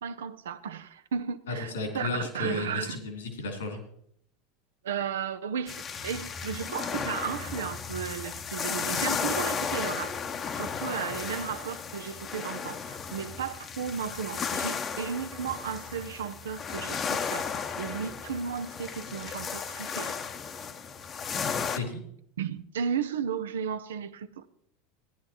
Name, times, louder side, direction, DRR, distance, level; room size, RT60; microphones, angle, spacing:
voice 1, 0.0-3.0 4.8-10.2 10.5-17.5 17.8-20.1 22.4-24.5, right 7 dB, 80° right, 0.6 m, -34 dB
voice 2, 1.5-3.8 21.8-22.0, left 3 dB, 80° left, 3.3 m, -33 dB
sound 1, 5.7-21.8, left 6 dB, 35° left, 0.8 m, -34 dB
15.5 x 10.5 x 3.0 m
hypercardioid pair, 85°, 0 cm